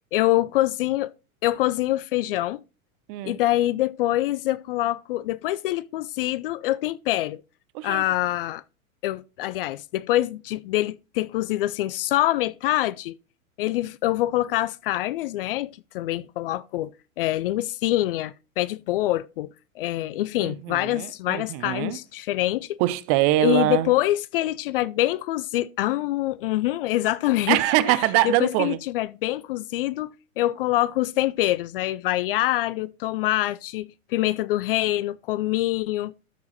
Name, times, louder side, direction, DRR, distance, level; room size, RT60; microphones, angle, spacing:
voice 1, 0.1-1.1 1.4-2.6 3.2-7.4 7.8-8.6 9.0-13.2 13.6-19.5 19.8-22.8 23.4-27.6 28.2-36.1, left 15 dB, 40° left, 0.4 m, -25 dB
voice 2, 7.7-8.1 20.4-22.0 22.8-23.9 27.5-28.8, right 15 dB, 30° right, 0.5 m, -23 dB
13.0 x 4.7 x 4.0 m
figure-of-eight pair, 100°, 43 cm